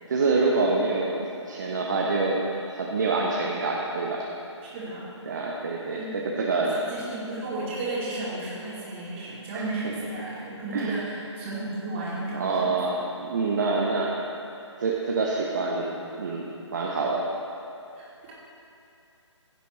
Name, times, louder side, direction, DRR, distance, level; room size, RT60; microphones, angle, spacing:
voice 1, 0.1-4.2 5.3-6.8 9.5-9.6 10.7-11.0 12.3-14.1 14.8-17.3, right 3 dB, 40° right, -2 dB, 0.8 m, -26 dB
voice 2, 4.6-5.0 5.9-6.1 6.7-12.7 18.0-18.3, right 2 dB, 20° right, -8 dB, 2.4 m, -34 dB
16.0 x 6.7 x 3.1 m, 2.7 s
figure-of-eight pair, 145°, 16 cm